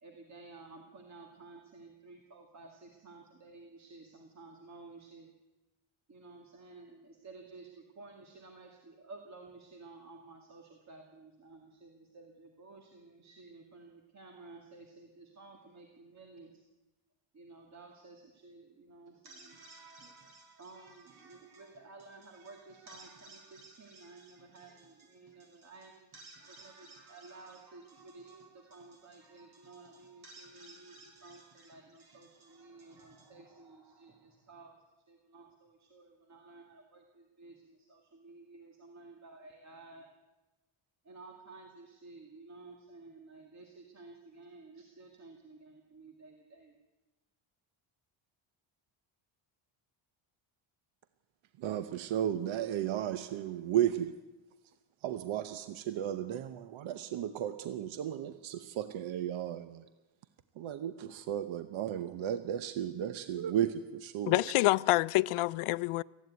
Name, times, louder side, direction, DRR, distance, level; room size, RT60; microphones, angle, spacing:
voice 1, 0.0-5.3 6.1-16.6 17.3-19.6 20.6-26.1 26.4-34.8 35.1-40.1 41.0-46.8, right 3 dB, 35° right, 2.1 m, -54 dB
sound 1, 19.1-34.3, right 2 dB, 50° right, 3.8 m, -58 dB
voice 2, 51.6-54.2 55.0-59.9 60.6-64.4, right 10 dB, 70° right, 0.9 m, -34 dB
voice 3, 64.3-66.0, left 19 dB, 85° left, 0.6 m, -27 dB
18.5 x 15.0 x 9.4 m
cardioid pair, 175°, 50 cm